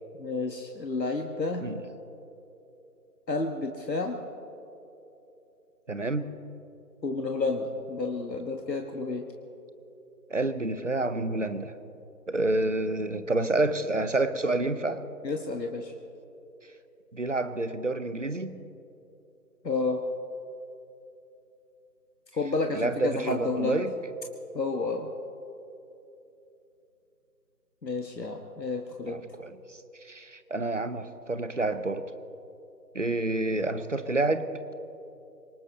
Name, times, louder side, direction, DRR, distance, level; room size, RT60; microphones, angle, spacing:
voice 1, 0.2-1.6 3.3-4.2 7.0-9.3 15.2-15.9 19.6-20.0 22.3-23.8 24.5-25.1 27.8-29.2, left 3 dB, 85° left, 3 dB, 1.5 m, -30 dB
voice 2, 5.9-6.3 10.3-11.8 12.3-15.0 17.1-18.6 22.7-23.9 29.1-32.1 32.9-34.5, right 2 dB, 50° right, 12 dB, 0.8 m, -29 dB
24.0 x 20.0 x 2.8 m, 2.9 s
figure-of-eight pair, 170°, 49 cm